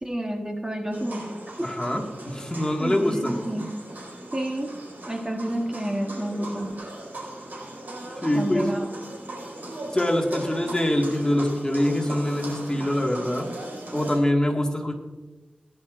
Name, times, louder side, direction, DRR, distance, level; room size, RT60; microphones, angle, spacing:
voice 1, 0.0-1.7 2.8-3.7 4.3-4.8 5.1-6.8 8.3-9.0, right 1 dB, 25° right, 2 dB, 1.2 m, -30 dB
sound 1, 0.9-14.2, right 1 dB, 85° right, 4.6 m, -38 dB
voice 2, 1.6-3.4 8.2-8.7 9.9-13.5 13.9-14.9, left 1 dB, 20° left, 1 dB, 1.8 m, -24 dB
18.0 x 11.0 x 2.5 m, 1.2 s
wide cardioid pair, 70°, 3 cm